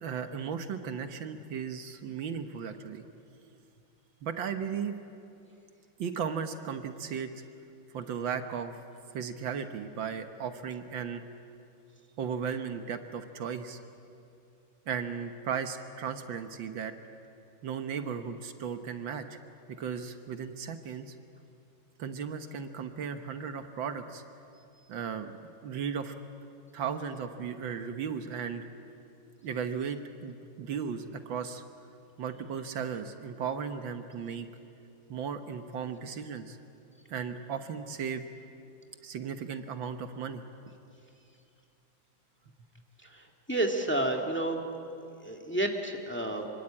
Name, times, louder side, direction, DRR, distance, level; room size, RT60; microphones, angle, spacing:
voice 1, 0.0-3.0 4.2-5.0 6.0-7.3 7.9-8.8 9.1-11.2 12.2-13.8 14.9-16.9 17.6-19.4 19.8-21.2 22.0-24.2 24.9-25.3 25.6-26.1 26.7-28.7 29.4-31.6 32.2-34.5 35.1-36.6 37.1-38.3 39.0-40.4, right 7 dB, 70° right, 8 dB, 1.8 m, -36 dB
voice 2, 43.1-44.6 45.2-46.5, right 1 dB, 5° left, 2 dB, 1.8 m, -30 dB
25.0 x 24.5 x 8.8 m, 2.6 s
omnidirectional pair, 2.2 m